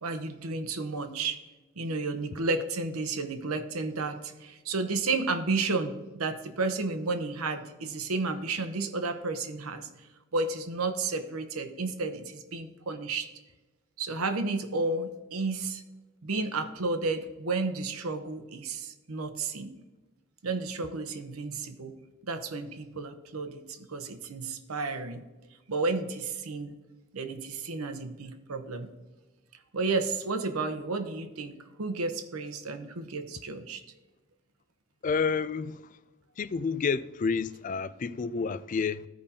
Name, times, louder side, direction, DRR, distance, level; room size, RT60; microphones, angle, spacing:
voice 1, 0.0-1.4 1.8-9.9 10.3-13.3 14.0-15.8 16.2-19.7 20.4-22.0 22.2-25.2 25.7-26.7 27.1-28.9 29.7-33.8, right 3 dB, 85° right, 0.9 m, -32 dB
voice 2, 35.0-36.0 36.4-39.1, left 5 dB, 35° left, 0.3 m, -30 dB
15.5 x 5.2 x 2.8 m
head